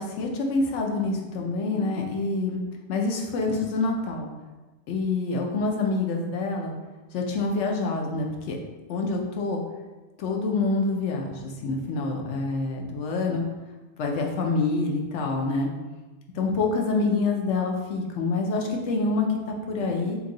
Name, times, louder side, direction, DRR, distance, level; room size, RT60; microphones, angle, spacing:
voice 1, 0.0-2.6 2.9-4.3 4.9-6.7 7.1-8.6 8.9-9.6 10.2-13.4 14.0-15.7 16.3-20.2, left 3 dB, 85° left, 1 dB, 0.9 m, -26 dB
2.9 x 2.6 x 3.7 m, 1.1 s
omnidirectional pair, 1.2 m